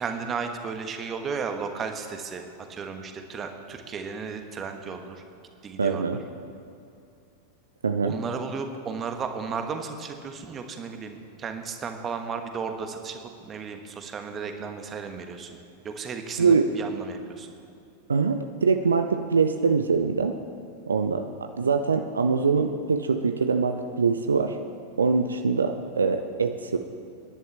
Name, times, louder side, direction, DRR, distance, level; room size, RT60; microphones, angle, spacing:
voice 1, 0.0-2.4 2.7-5.2 5.6-6.2 8.0-15.5 15.8-17.5, right 5 dB, 25° right, 6 dB, 1.3 m, -34 dB
voice 2, 5.8-6.2 7.8-8.1 16.4-16.7 18.1-20.3 20.9-24.6 25.0-26.8, right 5 dB, 75° right, 7 dB, 0.6 m, -23 dB
25.0 x 11.0 x 3.4 m, 2.5 s
figure-of-eight pair, 90°, 0 cm